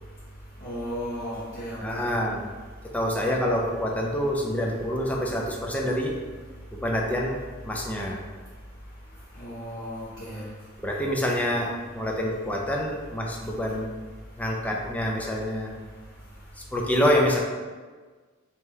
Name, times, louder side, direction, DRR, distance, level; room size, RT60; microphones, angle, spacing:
voice 1, 0.6-2.1 9.4-10.4, equal, 45° left, -11 dB, 1.0 m, -35 dB
voice 2, 1.8-2.5 2.8-6.2 6.7-7.4 7.6-8.2 10.8-13.9 14.4-15.7 16.7-17.4, equal, 5° left, -1 dB, 0.4 m, -26 dB
3.1 x 2.8 x 3.7 m, 1.4 s
head